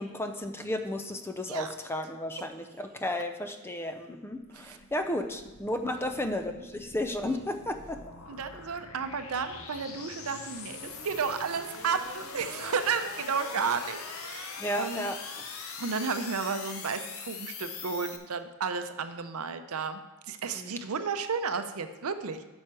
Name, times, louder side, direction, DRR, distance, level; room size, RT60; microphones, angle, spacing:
voice 1, 0.0-8.0 14.6-15.2 20.6-20.7, left 1 dB, 10° left, 7 dB, 0.5 m, -33 dB
sound 1, 4.4-18.2, left 5 dB, 70° left, 0.9 m, -43 dB
voice 2, 8.3-15.1 15.8-20.0 20.3-22.4, right 5 dB, 75° right, 9 dB, 0.6 m, -33 dB
9.0 x 6.3 x 4.8 m, 1.1 s
head